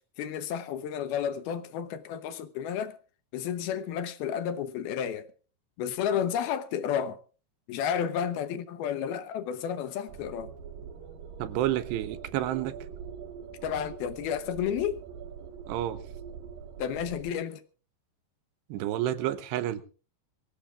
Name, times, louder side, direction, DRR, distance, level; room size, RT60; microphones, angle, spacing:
voice 1, 0.2-3.0 3.3-5.3 5.8-7.2 7.7-10.5 13.6-15.0 16.8-17.6, left 8 dB, 75° left, 2.6 m, -31 dB
sound 1, 10.1-17.3, right 7 dB, 65° right, 2.9 m, -43 dB
voice 2, 11.4-12.8 15.7-16.0 18.7-19.8, right 13 dB, 85° right, 3.2 m, -30 dB
24.0 x 16.5 x 2.4 m
omnidirectional pair, 4.9 m